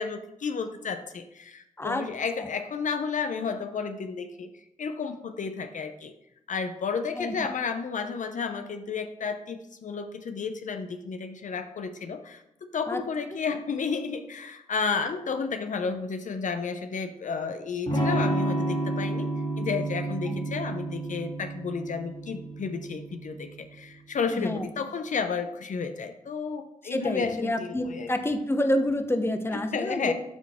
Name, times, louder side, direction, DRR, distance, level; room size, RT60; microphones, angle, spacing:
voice 1, 0.0-4.5 4.8-6.1 6.5-19.3 19.6-28.1 29.5-30.1, left 5 dB, 65° left, 8 dB, 0.6 m, -32 dB
Electric guitar / Strum, 17.9-23.6, right 2 dB, 45° left, 2.6 m, -30 dB
voice 2, 24.3-24.6 26.8-30.1, left 1 dB, 15° left, 7 dB, 0.9 m, -28 dB
12.0 x 4.0 x 3.6 m, 0.85 s
cardioid pair, 60°, 14 cm